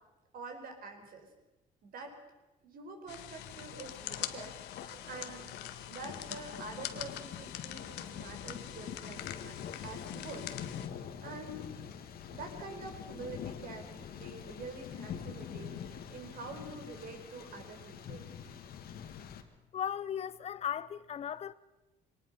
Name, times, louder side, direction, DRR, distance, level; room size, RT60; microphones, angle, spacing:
voice 1, 0.3-1.3 1.8-2.2 2.6-5.5 5.9-9.6 9.8-10.5 11.2-11.7 12.3-18.3, right 3 dB, 60° right, 4.7 m, -46 dB
sound 1, 3.1-10.9, left 13 dB, 85° left, 1.3 m, -44 dB
Thunder, 3.4-19.4, left 8 dB, 65° left, 2.0 m, -45 dB
voice 2, 19.7-21.5, left 9 dB, 40° left, 0.7 m, -36 dB
24.0 x 19.0 x 5.8 m
cardioid pair, 110°, 17 cm